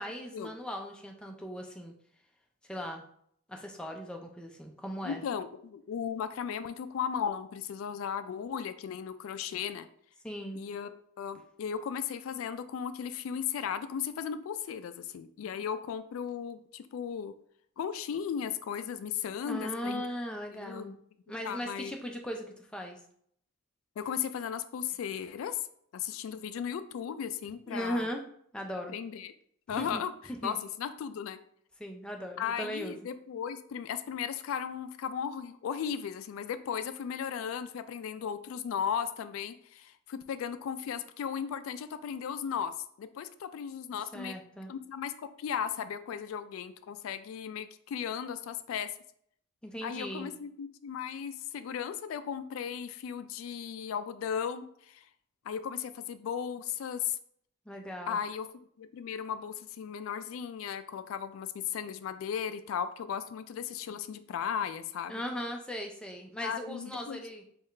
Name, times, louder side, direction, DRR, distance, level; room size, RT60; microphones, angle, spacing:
voice 1, 0.0-1.9 2.6-3.0 3.5-5.2 10.2-10.6 19.5-20.9 21.3-23.0 27.7-28.2 28.5-28.9 29.7-30.0 30.3-30.6 31.8-33.0 44.1-44.7 49.6-50.3 57.7-58.2 65.1-67.5, equal, 5° left, 1 dB, 0.4 m, -38 dB
voice 2, 5.0-9.9 10.5-10.9 11.2-17.3 17.8-20.0 20.5-21.0 21.4-22.0 24.0-25.7 25.9-28.1 28.9-29.3 29.7-30.1 30.4-31.4 32.4-42.7 43.0-44.4 44.7-48.9 49.8-55.1 55.4-57.2 58.1-58.5 58.8-65.2 66.4-67.2, left 7 dB, 85° left, 13 dB, 0.3 m, -36 dB
4.7 x 2.4 x 3.2 m, 0.66 s
head